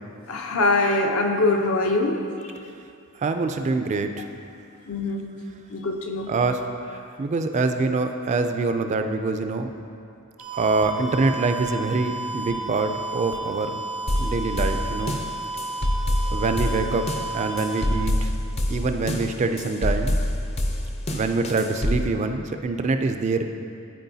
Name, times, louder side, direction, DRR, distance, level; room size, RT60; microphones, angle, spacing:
voice 1, 0.3-2.2 4.9-5.3 5.7-6.3, left 2 dB, 70° left, 2 dB, 0.7 m, -23 dB
voice 2, 3.2-4.3 6.3-9.7 10.5-13.8 14.2-15.2 16.3-17.1 17.3-18.3 18.7-20.2 21.1-23.5, right 3 dB, 30° right, 7 dB, 0.3 m, -25 dB
sound 1, 10.4-17.9, right 2 dB, 85° right, 0.9 m, -33 dB
sound 2, 14.1-22.1, left 1 dB, 30° left, 0.5 m, -26 dB
13.0 x 4.4 x 2.7 m, 2.5 s
head